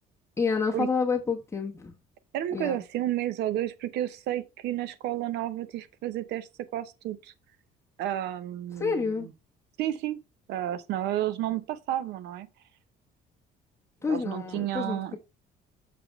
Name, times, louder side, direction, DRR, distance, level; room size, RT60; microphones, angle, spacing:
voice 1, 0.4-1.9 2.5-2.8 8.8-9.3 14.0-15.2, left 5 dB, 15° left, 1.2 m, -29 dB
voice 2, 2.3-7.3 8.0-9.3 9.8-10.2 10.5-12.5 14.1-15.2, right 12 dB, 80° right, 0.7 m, -31 dB
6.7 x 3.9 x 4.4 m
cardioid pair, 110°, 17 cm